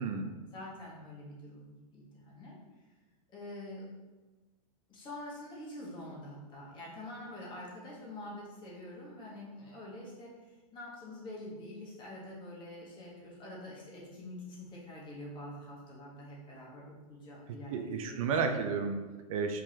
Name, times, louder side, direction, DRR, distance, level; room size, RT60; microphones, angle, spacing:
voice 1, 0.0-2.9 3.3-3.8 4.9-18.3 18.7-18.8, left 1 dB, 25° left, -4 dB, 1.3 m, -46 dB
voice 2, 17.7-19.6, right 5 dB, 60° right, 5 dB, 0.6 m, -32 dB
4.7 x 3.8 x 2.9 m, 1.2 s
hypercardioid pair, 140°, 20 cm